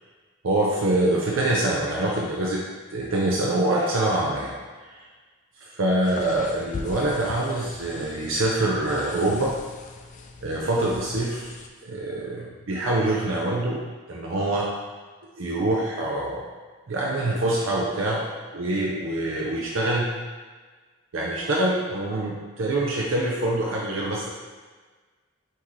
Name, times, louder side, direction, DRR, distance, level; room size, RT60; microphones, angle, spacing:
voice 1, 0.4-2.6 2.9-4.5 5.7-9.5 10.4-11.5 11.8-13.8 14.1-14.7 15.4-16.4 16.9-18.2 18.5-20.1 21.1-24.3, right 1 dB, 90° right, -3 dB, 0.6 m, -25 dB
sound 1, 6.0-11.7, left 3 dB, 40° left, 0.3 m, -40 dB
5.8 x 2.8 x 3.2 m, 1.4 s
head